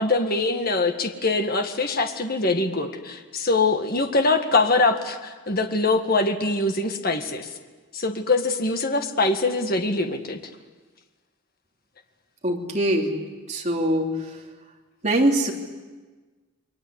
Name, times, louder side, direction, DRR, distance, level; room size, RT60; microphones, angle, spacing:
voice 1, 0.0-7.5 7.9-10.4, left 3 dB, 45° left, 5 dB, 1.8 m, -23 dB
voice 2, 12.4-13.2 13.5-14.1 15.0-15.5, right 1 dB, 30° right, 0 dB, 3.1 m, -22 dB
29.0 x 22.0 x 8.3 m, 1.3 s
head